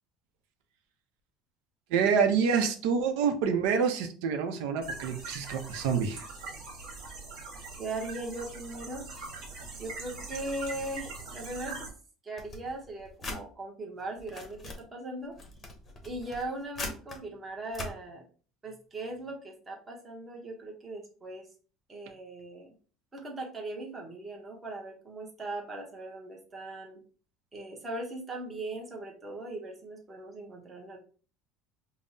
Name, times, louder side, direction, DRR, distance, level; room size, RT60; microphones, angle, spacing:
voice 1, 1.9-6.2, right 6 dB, 85° right, 6 dB, 0.5 m, -27 dB
sound 1, 4.8-11.9, right 3 dB, 65° right, 1.4 m, -42 dB
voice 2, 7.8-9.0 9.7-11.9 12.2-15.3 16.0-18.2 18.6-21.5 21.9-22.7 23.1-27.0 27.5-31.0, right 2 dB, 15° right, 0 dB, 0.8 m, -39 dB
sound 2, 12.4-13.4 14.0-14.8 15.3-17.2 17.7-17.9, left 2 dB, 20° left, 0.7 m, -41 dB
5.3 x 2.0 x 2.7 m, 0.40 s
cardioid pair, 155°, 0 cm